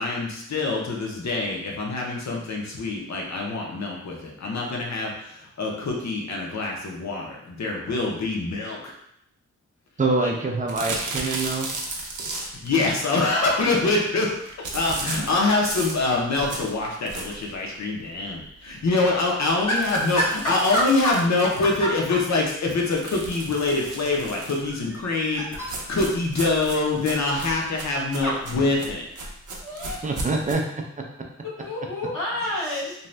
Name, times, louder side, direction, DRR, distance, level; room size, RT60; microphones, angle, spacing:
voice 1, 0.0-8.9 10.2-10.3 12.4-20.2 20.5-25.5 25.9-29.0, left 3 dB, 60° left, -1 dB, 0.7 m, -25 dB
voice 2, 10.0-11.7 16.4-16.5 30.0-30.6, right 3 dB, 25° right, 1 dB, 0.4 m, -25 dB
sound 1, 10.7-12.7 14.6-17.5 18.0-18.1 18.4-18.5 18.8-18.9 19.6-22.1 22.9-24.7 25.5-30.5, right 2 dB, 80° right, 0.6 m, -35 dB
voice 3, 19.7-20.3 20.7-21.1 21.8-21.9 24.9-25.6 28.2-28.3 29.6-30.0 31.4-32.9, equal, 85° left, -10 dB, 1.2 m, -28 dB
2.6 x 2.2 x 3.1 m, 0.74 s
wide cardioid pair, 150°, 31 cm